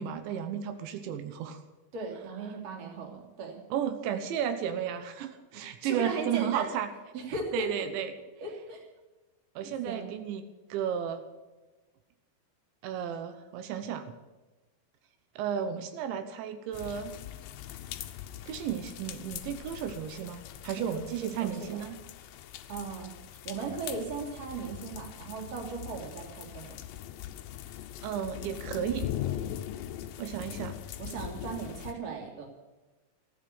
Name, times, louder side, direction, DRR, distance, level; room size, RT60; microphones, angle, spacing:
voice 1, 0.0-1.6 3.7-6.9 7.5-8.1 9.6-10.4 10.7-11.2 12.8-14.1 15.4-17.1 18.5-22.0 28.0-29.1 30.2-30.8, right 9 dB, 85° right, 8 dB, 3.4 m, -33 dB
voice 2, 1.9-3.6 5.5-6.7 7.1-7.9 8.4-8.9 9.6-10.1 20.7-21.8 22.7-23.1 23.4-26.8 30.3-30.5 31.0-32.5, right 4 dB, 40° right, 1 dB, 3.5 m, -37 dB
sound 1, 16.7-31.9, left 12 dB, 80° left, 2.1 m, -41 dB
15.0 x 10.5 x 8.2 m, 1.2 s
omnidirectional pair, 5.1 m